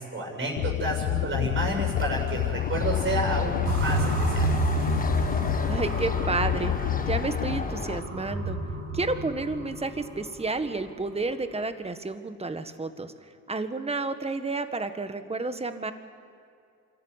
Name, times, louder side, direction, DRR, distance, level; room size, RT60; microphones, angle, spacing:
voice 1, 0.0-4.5, right 2 dB, 40° right, 0 dB, 6.9 m, -30 dB
sound 1, 0.6-7.6, left 16 dB, 90° left, 0.5 m, -29 dB
sound 2, 1.9-8.0, left 4 dB, 30° left, 1.4 m, -34 dB
sound 3, 3.6-10.7, right 3 dB, 65° right, 7.3 m, -31 dB
voice 2, 5.7-6.7 7.1-8.6 8.9-13.1 13.5-15.9, right 3 dB, 20° right, 9 dB, 1.6 m, -30 dB
26.0 x 14.0 x 9.9 m, 2.4 s
cardioid pair, 90°, 30 cm